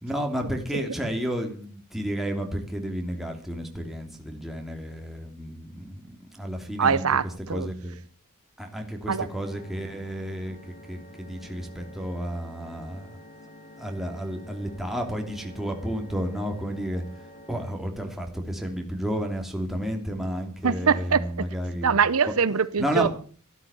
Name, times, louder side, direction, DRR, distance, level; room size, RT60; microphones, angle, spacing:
voice 1, 0.0-7.0 7.5-8.0 8.6-10.6 10.9-13.1 13.8-17.0 17.5-22.0 22.8-23.1, equal, ahead, 2.7 m, -31 dB
voice 2, 6.8-7.7 9.1-9.3 20.6-21.2 21.8-23.1, right 6 dB, 75° right, 0.8 m, -23 dB
sound 1, 9.1-17.7, left 1 dB, 45° left, 3.0 m, -48 dB
14.0 x 12.0 x 7.0 m
head